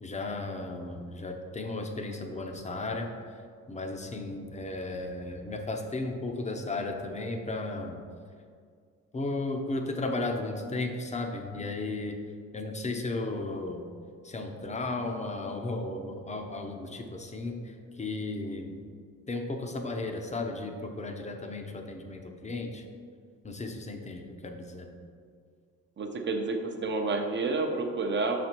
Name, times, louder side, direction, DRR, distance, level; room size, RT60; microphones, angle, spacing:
voice 1, 0.0-3.4 3.7-8.0 9.1-12.2 12.5-13.8 14.2-18.8 19.3-22.8 23.4-24.9, left 2 dB, 25° left, 3 dB, 0.7 m, -35 dB
voice 2, 26.0-28.4, right 3 dB, 40° right, 4 dB, 0.8 m, -29 dB
5.7 x 4.2 x 4.5 m, 2.1 s
cardioid pair, 90°, 30 cm